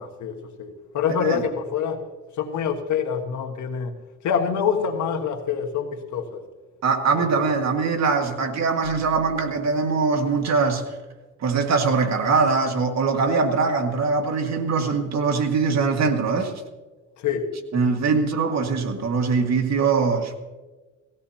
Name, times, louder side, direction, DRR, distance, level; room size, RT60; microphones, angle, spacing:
voice 1, 0.0-2.1 2.4-3.9 4.2-6.4 7.1-7.5 17.2-17.5, left 7 dB, 70° left, 1.6 m, -26 dB
voice 2, 6.8-10.8 11.4-16.5 17.7-20.3, right 4 dB, 60° right, 2.0 m, -22 dB
19.0 x 16.0 x 2.9 m
cardioid pair, 90°, 30 cm